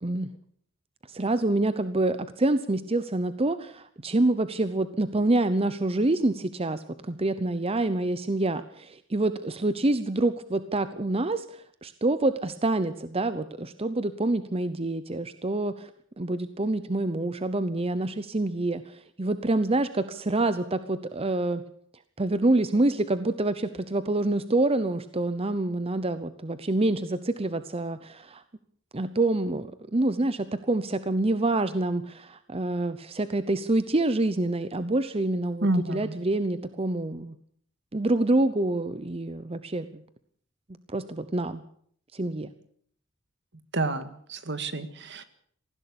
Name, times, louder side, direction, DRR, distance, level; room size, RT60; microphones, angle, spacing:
voice 1, 1.1-15.9 16.2-21.6 22.2-28.4 28.9-37.4 37.9-40.0 40.9-41.6 42.1-42.5, right 2 dB, 30° right, 12 dB, 0.8 m, -27 dB
voice 2, 35.6-36.2 43.7-45.2, right 2 dB, 60° right, 11 dB, 1.9 m, -29 dB
19.5 x 15.5 x 8.5 m, 0.62 s
head